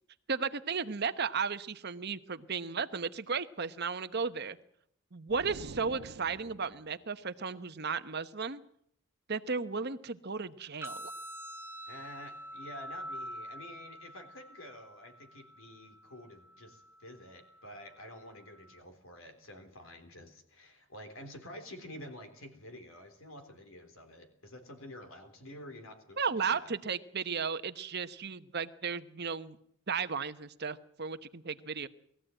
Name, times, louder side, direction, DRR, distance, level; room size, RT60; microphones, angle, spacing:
voice 1, 0.3-4.6 5.1-8.6 9.3-11.1 26.2-29.6 29.9-31.9, right 5 dB, 50° right, 11 dB, 1.0 m, -35 dB
sound 1, 5.3-6.9, right 3 dB, 75° right, 0.9 m, -47 dB
sound 2, 10.8-18.8, equal, 10° right, 0.8 m, -47 dB
voice 2, 11.9-26.7, left 1 dB, 70° left, 8 dB, 3.5 m, -49 dB
21.0 x 14.5 x 9.0 m, 0.70 s
head